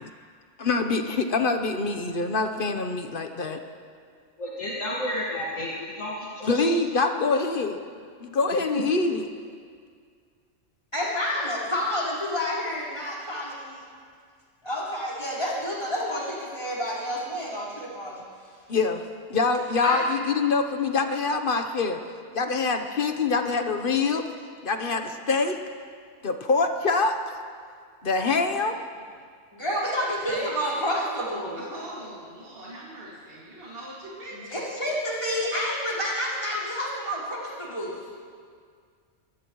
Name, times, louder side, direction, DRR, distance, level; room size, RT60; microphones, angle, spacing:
voice 1, 0.6-3.6 6.4-7.8 8.2-9.3 18.7-19.0 19.3-22.0 22.3-24.3 24.6-25.6 26.2-27.1 28.0-28.8, left 4 dB, 45° left, 6 dB, 1.1 m, -25 dB
voice 2, 4.4-6.6 8.7-8.8, equal, 80° left, -6 dB, 2.3 m, -31 dB
voice 3, 10.9-13.8 14.6-18.2 19.8-20.0 29.5-31.6 34.3-38.0, equal, 25° left, -8 dB, 4.8 m, -29 dB
voice 4, 30.3-31.1 31.5-34.6, right 1 dB, 50° right, -7 dB, 2.7 m, -41 dB
24.5 x 18.5 x 3.1 m, 2.1 s
omnidirectional pair, 1.3 m